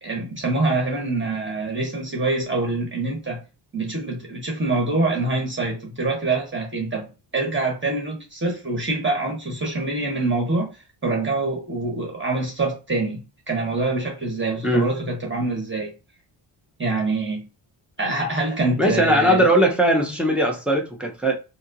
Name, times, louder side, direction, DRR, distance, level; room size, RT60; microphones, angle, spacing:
voice 1, 0.0-3.4 3.7-10.7 11.0-15.9 16.8-17.5 18.0-19.5, right 2 dB, 25° right, 1.3 m, -25 dB
voice 2, 18.8-21.3, equal, ahead, 0.8 m, -19 dB
4.2 x 2.0 x 2.6 m
cardioid pair, 105°, 49 cm